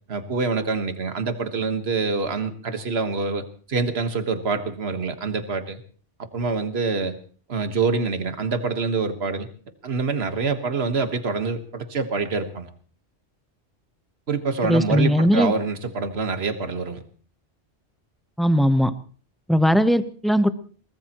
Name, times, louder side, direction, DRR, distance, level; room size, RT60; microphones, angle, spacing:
voice 1, 0.1-5.8 6.3-7.1 7.5-9.5 9.8-12.7 14.3-17.0, right 4 dB, 60° right, 8 dB, 1.7 m, -26 dB
voice 2, 14.6-15.5 18.4-18.9 19.5-20.5, equal, ahead, 10 dB, 0.7 m, -19 dB
22.5 x 19.5 x 3.0 m, 0.42 s
omnidirectional pair, 1.2 m